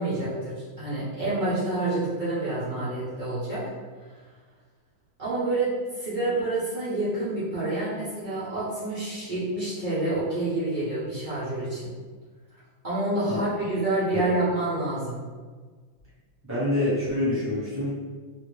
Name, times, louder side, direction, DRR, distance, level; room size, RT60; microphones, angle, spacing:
voice 1, 0.0-3.6 4.0-4.1 5.2-11.9 12.8-15.2, right 2 dB, 60° right, -13 dB, 0.5 m, -28 dB
voice 2, 16.5-17.9, left 1 dB, 10° right, -10 dB, 1.2 m, -26 dB
3.0 x 2.7 x 3.1 m, 1.5 s
omnidirectional pair, 2.2 m